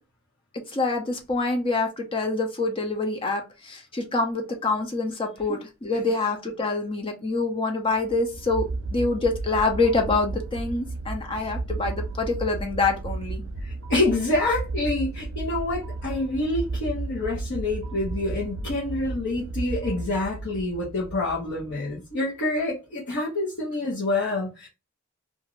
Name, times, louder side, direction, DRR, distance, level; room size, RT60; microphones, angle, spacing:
voice 1, 0.7-13.4, left 3 dB, 25° left, 0.5 m, -26 dB
sound 1, 8.0-22.1, right 2 dB, 80° right, 0.5 m, -34 dB
voice 2, 13.6-24.7, left 2 dB, 60° left, 0.9 m, -27 dB
2.5 x 2.5 x 3.0 m
head